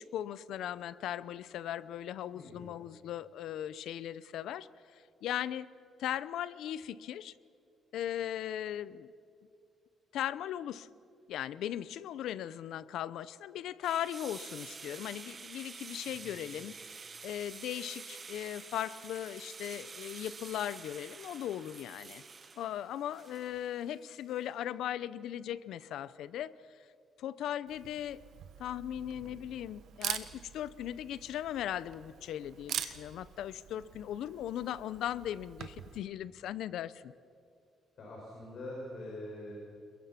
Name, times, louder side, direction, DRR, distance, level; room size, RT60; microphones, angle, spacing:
voice 1, 0.0-4.7 4.9-5.7 6.0-7.3 7.9-9.1 10.1-10.9 11.3-22.2 22.6-26.5 27.2-28.2 28.6-37.1, left 11 dB, 85° left, 17 dB, 0.7 m, -38 dB
voice 2, 2.3-2.7 16.1-16.5 29.0-29.4 38.0-39.5, left 1 dB, 50° left, -3 dB, 6.1 m, -45 dB
sound 1, 13.8-23.8, right 5 dB, 30° right, 0.9 m, -48 dB
Sink (filling or washing), 17.9-26.4 26.7-26.9 28.1-28.3, left 4 dB, 70° left, 6.7 m, -72 dB
Camera, 27.7-36.0, right 10 dB, 70° right, 1.3 m, -44 dB
29.5 x 22.0 x 5.9 m, 2.4 s
cardioid pair, 155°, 0 cm